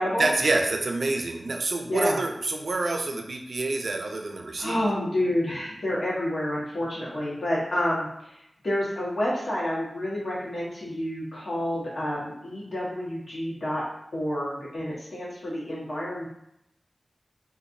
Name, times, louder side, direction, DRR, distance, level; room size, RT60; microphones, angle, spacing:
voice 1, 0.2-4.8, right 2 dB, 70° right, 3 dB, 0.5 m, -27 dB
voice 2, 4.6-8.1 8.6-13.8 14.1-16.3, left 1 dB, 70° left, -6 dB, 1.3 m, -29 dB
3.8 x 2.5 x 2.6 m, 0.80 s
cardioid pair, 55°, 0 cm